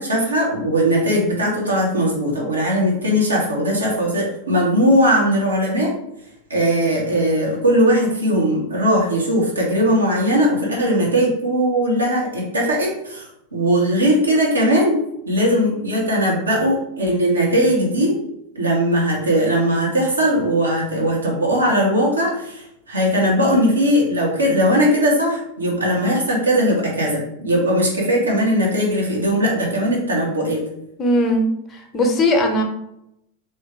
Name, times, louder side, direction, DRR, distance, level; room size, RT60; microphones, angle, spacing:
voice 1, 0.0-5.9 6.5-15.0 15.3-18.2 18.5-30.6, equal, 75° right, -3 dB, 1.3 m, -19 dB
voice 2, 31.0-32.6, left 1 dB, 20° left, 3 dB, 0.8 m, -19 dB
3.5 x 3.1 x 3.2 m, 0.80 s
figure-of-eight pair, 90°, 0 cm